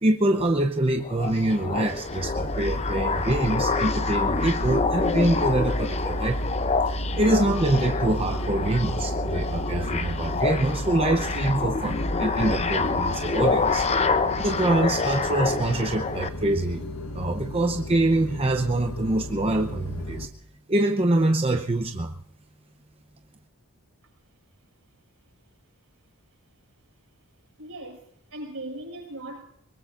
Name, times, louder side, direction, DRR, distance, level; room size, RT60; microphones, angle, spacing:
voice 1, 0.0-6.5 6.9-13.9 14.4-16.8 17.1-20.3 20.7-22.2, right 2 dB, 25° right, 5 dB, 0.8 m, -25 dB
sound 1, 1.0-16.3, left 4 dB, 30° left, 0.8 m, -27 dB
sound 2, 2.2-20.3, equal, 70° left, 1.4 m, -33 dB
voice 2, 27.6-29.4, right 1 dB, 70° right, 1 dB, 6.2 m, -38 dB
24.0 x 21.5 x 2.6 m, 0.66 s
head